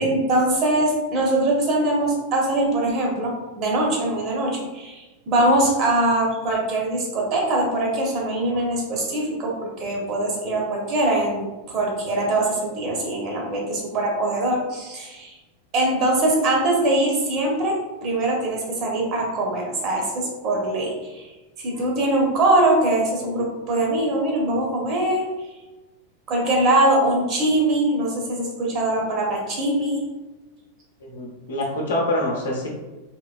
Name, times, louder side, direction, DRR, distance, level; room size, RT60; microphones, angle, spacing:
voice 1, 0.0-15.3 15.7-21.3 21.6-25.2 26.3-30.0, right 1 dB, 35° right, -1 dB, 0.9 m, -22 dB
voice 2, 31.0-32.7, left 1 dB, 60° left, -1 dB, 0.8 m, -25 dB
3.7 x 2.9 x 2.3 m, 1.1 s
figure-of-eight pair, 90°, 0 cm